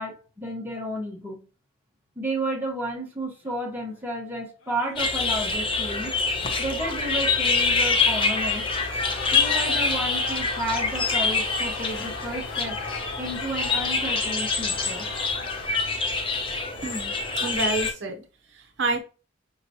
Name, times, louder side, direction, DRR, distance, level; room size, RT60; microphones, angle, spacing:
voice 1, 0.0-1.4 2.2-6.1 6.6-8.7 9.3-12.8 13.2-15.1, right 1 dB, 10° right, 1.0 m, -32 dB
sound 1, 3.4-3.7 3.9-4.0 4.6-5.0 6.2-6.7 7.3-15.7, left 3 dB, 85° left, 0.6 m, -38 dB
sound 2, 5.0-17.9, left 4 dB, 25° left, 0.6 m, -26 dB
voice 2, 16.8-17.1 17.4-18.2 18.5-19.0, right 2 dB, 60° right, 0.7 m, -28 dB
5.2 x 2.9 x 2.7 m
head